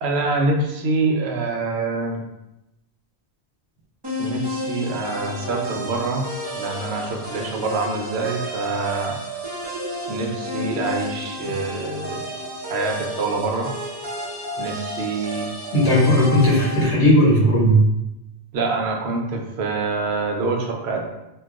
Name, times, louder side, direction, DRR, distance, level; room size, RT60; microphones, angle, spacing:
voice 1, 0.0-2.2 4.2-6.3 6.5-9.2 10.1-12.2 12.7-13.7 14.6-15.5 18.5-21.0, right 3 dB, 70° right, 2 dB, 0.8 m, -25 dB
sound 1, 4.0-16.8, equal, 25° right, 0.6 m, -31 dB
voice 2, 15.7-17.8, equal, 80° left, -4 dB, 1.1 m, -16 dB
2.3 x 2.3 x 3.6 m, 0.90 s
omnidirectional pair, 1.2 m